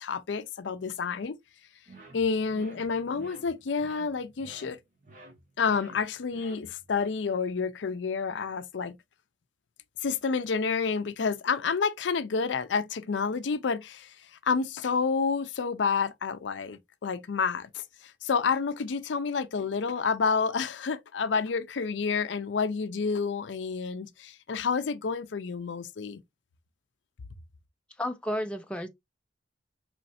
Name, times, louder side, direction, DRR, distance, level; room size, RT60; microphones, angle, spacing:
voice 1, 0.0-1.4 2.1-4.8 5.6-9.0 10.0-14.1 14.4-26.2, left 5 dB, 85° left, 0.5 m, -29 dB
sound 1, 1.9-7.0, right 2 dB, 45° right, 1.1 m, -51 dB
voice 2, 28.0-28.9, equal, 5° left, 0.4 m, -32 dB
4.2 x 3.1 x 2.5 m
head